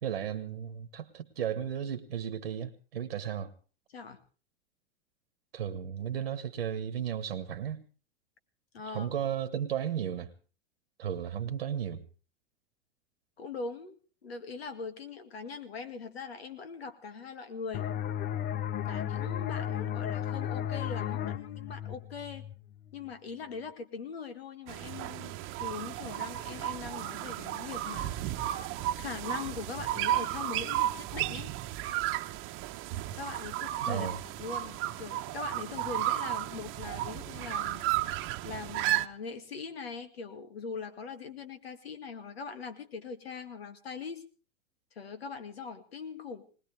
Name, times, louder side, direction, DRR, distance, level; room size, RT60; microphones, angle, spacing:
voice 1, 0.0-3.5 5.5-7.8 8.9-10.3 11.0-12.0 33.9-34.2, right 9 dB, 85° right, 11 dB, 1.4 m, -34 dB
voice 2, 8.7-9.1 13.4-14.0 14.2-17.9 18.9-22.5 22.9-28.5 28.9-31.5 33.1-37.8 38.4-44.2 45.0-46.5, left 5 dB, 85° left, 10 dB, 2.2 m, -41 dB
sound 1, 17.7-23.1, left 10 dB, 30° left, 0.7 m, -34 dB
sound 2, 24.7-39.1, right 14 dB, 40° right, 1.0 m, -33 dB
20.5 x 19.5 x 3.4 m, 0.36 s
hypercardioid pair, 105°, 30 cm